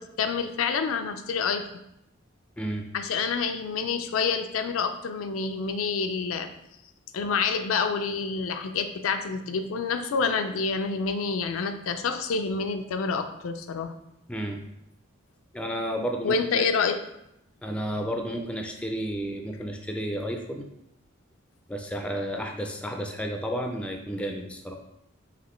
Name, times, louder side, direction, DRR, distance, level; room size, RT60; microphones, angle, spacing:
voice 1, 0.0-1.6 2.9-6.5 7.1-13.9 16.2-17.0, left 5 dB, 75° left, 7 dB, 0.4 m, -28 dB
voice 2, 14.3-14.6 15.5-16.6 17.6-20.6 21.7-24.7, equal, 5° left, 3 dB, 0.4 m, -32 dB
5.0 x 2.9 x 3.1 m, 0.81 s
head